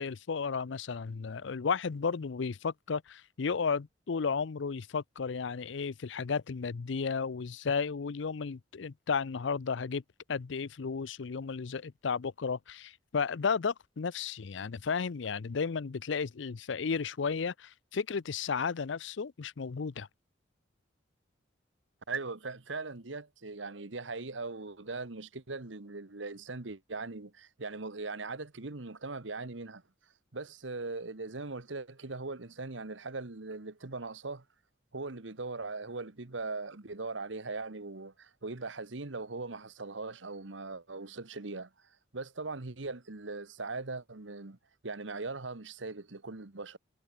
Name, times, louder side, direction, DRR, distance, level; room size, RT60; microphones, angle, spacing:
voice 1, 0.0-10.0 10.3-20.1, left 5 dB, 75° left, 0.5 m, -33 dB
voice 2, 22.1-29.8 30.3-34.4 34.9-41.7 42.1-44.6 44.8-46.8, right 3 dB, 80° right, 1.4 m, -40 dB
head